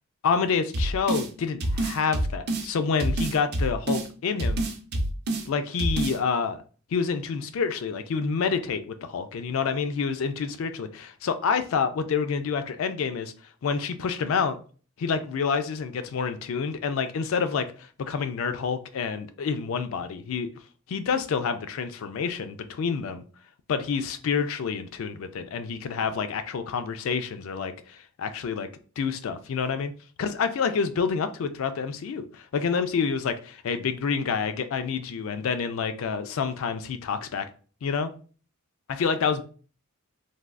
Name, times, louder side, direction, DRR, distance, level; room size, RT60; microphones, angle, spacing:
voice 1, 0.2-4.6 5.5-6.6 6.9-13.3 13.6-14.6 15.0-20.5 20.9-23.2 23.7-28.7 29.0-29.9 30.2-37.5 37.8-38.1 38.9-39.4, left 5 dB, 70° left, 0.3 m, -28 dB
sound 1, 0.7-1.3 1.6-2.7 3.0-4.1 4.4-5.5 5.8-6.2, right 1 dB, 50° right, 0.5 m, -26 dB
3.3 x 2.3 x 2.4 m
head